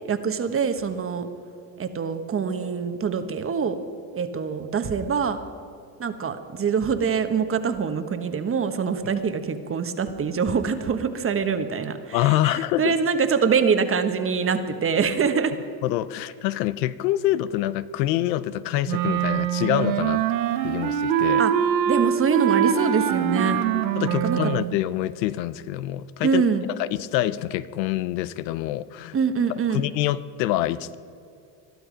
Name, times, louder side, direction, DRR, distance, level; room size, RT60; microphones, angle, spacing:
voice 1, 0.1-1.3 1.8-3.8 4.1-5.4 6.0-15.5 21.4-21.5 21.8-23.6 24.2-24.5 26.2-26.7 29.1-29.9, right 6 dB, 25° right, 9 dB, 1.2 m, -24 dB
voice 2, 12.1-13.0 15.8-20.2 20.6-21.4 24.0-26.4 26.8-29.1 29.7-31.0, left 14 dB, 90° left, 16 dB, 0.7 m, -26 dB
Wind instrument woodwind instrument, 18.9-24.8, right 9 dB, 85° right, 1.3 m, -23 dB
21.0 x 12.5 x 5.1 m, 2.6 s
supercardioid pair, 110°, 49 cm